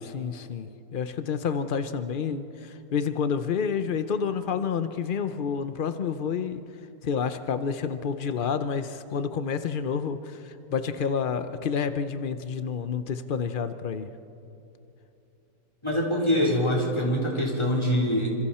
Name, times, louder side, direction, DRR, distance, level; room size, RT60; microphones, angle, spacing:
voice 1, 0.0-6.6 7.0-14.1, left 6 dB, 85° left, 10 dB, 0.4 m, -29 dB
voice 2, 15.8-18.3, equal, 15° left, -3 dB, 3.7 m, -24 dB
28.0 x 26.5 x 4.3 m, 2.8 s
omnidirectional pair, 1.9 m